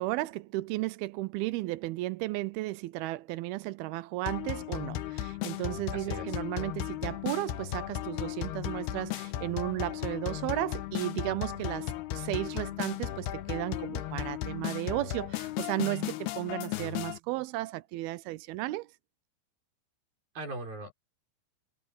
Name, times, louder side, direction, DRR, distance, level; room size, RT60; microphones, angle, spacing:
voice 1, 0.0-18.9, right 18 dB, 80° right, 2.4 m, -34 dB
sound 1, 4.3-17.2, left 13 dB, 80° left, 3.0 m, -35 dB
voice 2, 5.9-6.4 20.4-20.9, right 2 dB, 60° right, 7.7 m, -39 dB
omnidirectional pair, 4.6 m